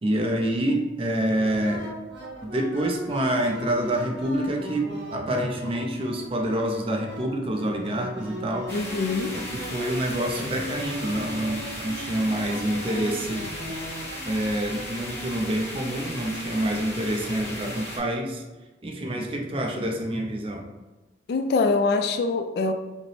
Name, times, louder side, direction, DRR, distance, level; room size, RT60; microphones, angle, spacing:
voice 1, 0.0-1.9 2.4-8.7 9.3-13.5 14.2-18.4 18.8-20.6, right 1 dB, 30° right, 2 dB, 0.5 m, -27 dB
sound 1, 1.4-17.7, right 1 dB, 80° right, 0.8 m, -40 dB
voice 2, 8.7-9.4 21.3-22.7, left 3 dB, 60° left, 8 dB, 0.3 m, -24 dB
sound 2, 8.7-18.0, left 1 dB, 15° left, 0.9 m, -36 dB
5.1 x 2.0 x 3.1 m, 1.1 s
head